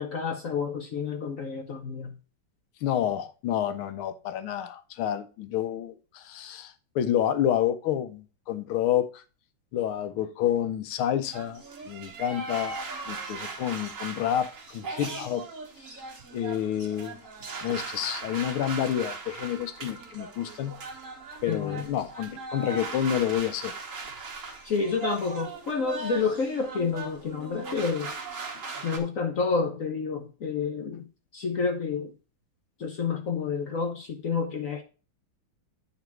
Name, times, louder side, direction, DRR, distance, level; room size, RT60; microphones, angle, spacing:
voice 1, 0.0-2.1 21.5-21.9 24.6-28.1 28.8-32.1 32.8-34.8, left 5 dB, 55° left, 0.9 m, -29 dB
voice 2, 2.8-9.2 9.7-12.8 13.1-15.5 15.8-15.9 16.3-17.2 17.6-20.8 21.4-23.7, left 10 dB, 90° left, 1.7 m, -29 dB
sound 1, 11.3-29.0, right 4 dB, 45° right, 1.5 m, -39 dB
9.4 x 4.0 x 4.5 m
omnidirectional pair, 2.3 m